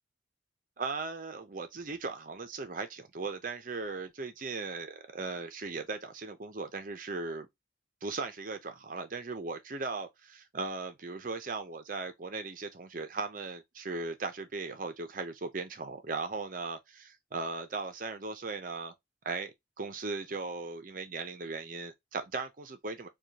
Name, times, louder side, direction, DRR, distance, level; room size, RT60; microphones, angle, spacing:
voice 1, 0.8-7.5 8.0-18.9 19.2-23.1, right 3 dB, 45° right, 0.6 m, -38 dB
4.8 x 2.3 x 2.7 m
head